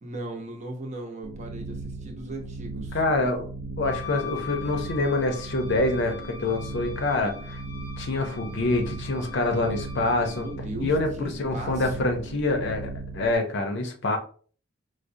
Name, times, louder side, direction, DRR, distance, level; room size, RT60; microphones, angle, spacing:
voice 1, 0.0-3.0 10.4-12.1, right 2 dB, 35° right, 3 dB, 0.7 m, -37 dB
sound 1, 1.2-13.3, right 3 dB, 85° right, 0.5 m, -38 dB
voice 2, 2.9-3.5 3.8-7.6 8.0-10.4 10.8-14.2, left 2 dB, 65° left, 5 dB, 0.6 m, -26 dB
Wind instrument woodwind instrument, 3.8-10.6, left 8 dB, 20° left, 0.8 m, -42 dB
4.8 x 2.1 x 2.6 m, 0.43 s
head